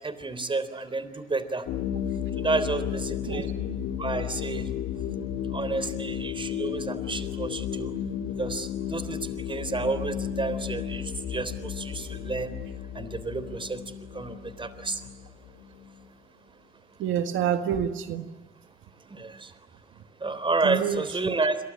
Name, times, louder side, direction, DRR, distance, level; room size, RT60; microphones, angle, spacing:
voice 1, 0.0-1.6 2.4-3.5 4.0-4.7 5.5-7.9 8.4-12.5 12.9-13.8 14.1-15.0 19.1-19.5 20.2-21.6, right 3 dB, 25° right, 13 dB, 3.7 m, -30 dB
sound 1, 1.7-16.0, left 9 dB, 85° left, 1.9 m, -33 dB
voice 2, 17.0-18.3 20.6-21.3, right 9 dB, 85° right, 7 dB, 1.8 m, -28 dB
29.0 x 23.5 x 8.8 m, 1.2 s
cardioid pair, 90°, 20 cm